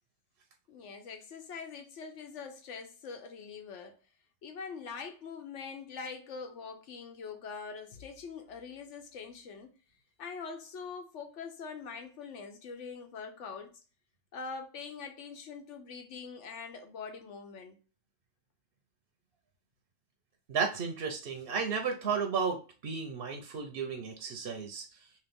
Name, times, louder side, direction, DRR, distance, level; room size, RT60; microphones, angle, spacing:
voice 1, 0.7-4.0 4.4-9.7 10.2-13.7 14.3-17.8, left 5 dB, 65° left, 1.1 m, -43 dB
voice 2, 20.5-22.6 22.8-24.9, right 6 dB, 55° right, 0.8 m, -33 dB
3.0 x 3.0 x 3.4 m
omnidirectional pair, 1.4 m